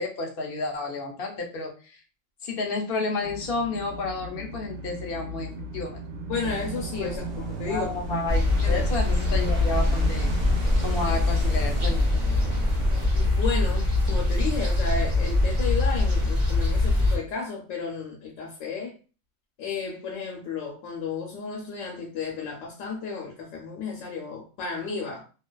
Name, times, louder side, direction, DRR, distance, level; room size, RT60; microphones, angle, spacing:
voice 1, 0.0-2.0 2.4-6.0 7.0-7.1 7.7-10.3 10.8-12.1, left 3 dB, 60° left, 2 dB, 0.7 m, -31 dB
sound 1, 3.2-15.6, right 2 dB, 80° right, 0.9 m, -38 dB
voice 2, 6.3-7.9 8.6-8.8 13.1-18.9 19.6-25.2, left 5 dB, 90° left, 0 dB, 1.0 m, -33 dB
sound 2, 6.4-13.1, right 2 dB, 55° right, 0.4 m, -39 dB
sound 3, 8.3-17.2, left 2 dB, 40° right, 1.0 m, -23 dB
2.4 x 2.3 x 2.2 m, 0.36 s
omnidirectional pair, 1.3 m